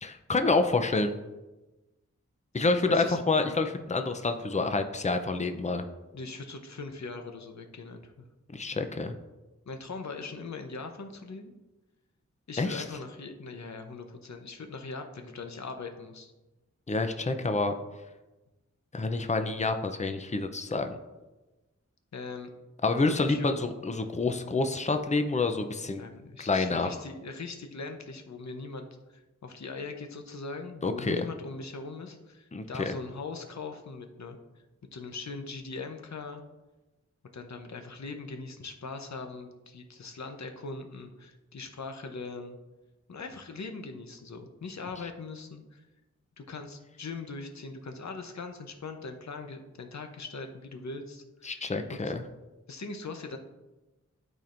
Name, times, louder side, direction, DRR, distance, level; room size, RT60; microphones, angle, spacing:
voice 1, 0.0-1.1 2.5-5.8 8.5-9.1 12.6-12.8 16.9-17.7 18.9-21.0 22.8-26.0 26.4-26.9 30.8-31.3 32.5-33.0 51.4-52.2, left 3 dB, 25° left, 7 dB, 0.6 m, -28 dB
voice 2, 2.6-3.2 6.1-8.3 9.7-11.5 12.5-16.3 22.1-22.5 23.1-23.6 26.0-34.4 34.9-36.4 37.3-42.6 43.1-45.9 46.4-52.1 52.7-53.4, left 3 dB, 65° left, 5 dB, 0.8 m, -41 dB
12.5 x 4.4 x 2.6 m, 1.1 s
wide cardioid pair, 80°, 30 cm